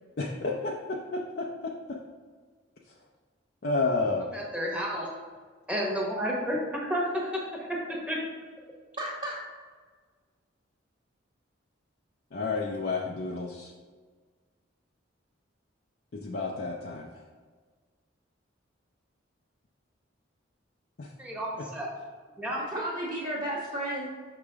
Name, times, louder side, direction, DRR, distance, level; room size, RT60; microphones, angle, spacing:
voice 1, 0.2-1.7 3.6-4.3 12.3-13.7 16.1-17.1 21.0-21.1 21.6-21.7, left 3 dB, 50° left, -1 dB, 0.5 m, -31 dB
voice 2, 4.3-5.1 5.7-8.2 21.2-21.5 21.7-21.9 22.4-22.6, equal, 5° right, -3 dB, 1.1 m, -31 dB
voice 3, 9.0-9.4 22.6-24.1, right 1 dB, 25° right, -9 dB, 1.2 m, -33 dB
6.4 x 5.0 x 3.5 m, 1.5 s
head